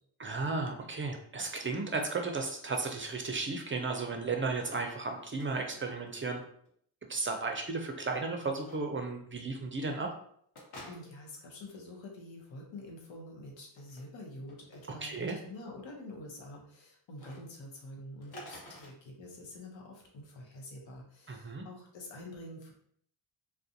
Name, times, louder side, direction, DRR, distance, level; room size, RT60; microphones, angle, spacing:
voice 1, 0.2-6.4 7.1-10.1 15.0-15.4 21.3-21.6, right 3 dB, 30° right, 3 dB, 0.5 m, -34 dB
sound 1, 5.1-5.5 5.7-6.4 6.6-6.7 8.6-8.8 10.5-11.3 13.6-14.0 14.5-14.8 17.1-17.4 18.2-18.9, equal, 55° left, 1.2 m, -49 dB
voice 2, 10.9-22.7, left 1 dB, 75° left, -1 dB, 0.9 m, -47 dB
2.4 x 2.2 x 2.7 m, 0.64 s
cardioid pair, 55°, 45 cm